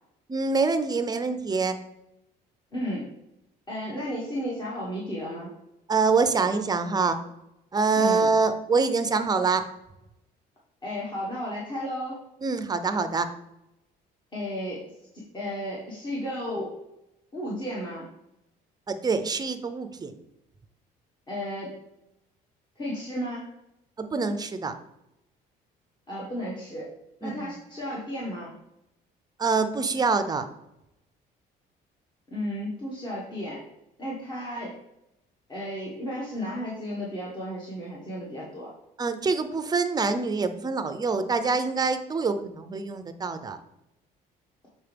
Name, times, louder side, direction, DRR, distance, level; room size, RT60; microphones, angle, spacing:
voice 1, 0.3-1.8 5.9-7.2 7.7-9.6 12.4-13.3 18.9-20.1 24.0-24.7 27.2-27.5 29.4-30.5 39.0-43.6, right 4 dB, 25° right, 9 dB, 0.6 m, -25 dB
voice 2, 2.7-3.1 3.7-5.5 8.0-8.3 10.8-12.2 14.3-14.8 15.1-16.7 17.3-18.1 21.3-21.8 22.8-23.5 26.1-26.9 27.2-28.5 32.3-33.6 34.0-34.7 35.5-38.7, equal, 25° left, -5 dB, 1.5 m, -33 dB
7.1 x 4.3 x 3.4 m, 0.87 s
cardioid pair, 110°, 17 cm